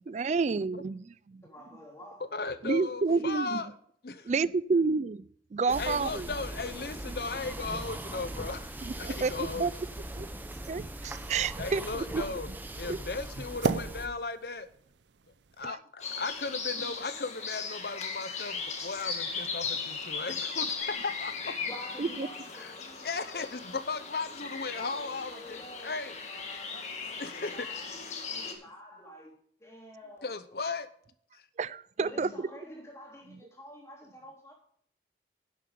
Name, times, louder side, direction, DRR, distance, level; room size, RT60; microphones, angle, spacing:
voice 1, 0.0-1.4 2.6-3.6 4.3-6.3 8.9-9.7 10.2-10.3 10.7-12.2 12.9-13.0 15.6-15.8 22.0-22.3 31.6-32.3, right 4 dB, 40° right, 19 dB, 0.3 m, -30 dB
voice 2, 1.4-2.3 3.1-3.3 21.6-23.1 24.7-28.0 28.3-29.3 29.6-30.3 32.0-34.5, equal, 15° left, -2 dB, 3.2 m, -48 dB
voice 3, 2.3-3.7 4.0-4.3 5.8-9.7 11.6-12.5 12.8-14.7 15.6-21.5 22.5-22.7 23.0-26.1 27.2-27.7 30.2-30.9 31.3-31.4, left 4 dB, 60° left, 12 dB, 0.8 m, -36 dB
sound 1, 5.7-14.1, right 1 dB, 10° right, 0.9 m, -40 dB
sound 2, 8.5-15.7, right 4 dB, 90° right, 0.6 m, -40 dB
sound 3, 16.0-28.5, left 5 dB, 40° left, 1.8 m, -37 dB
11.0 x 7.6 x 5.0 m, 0.62 s
head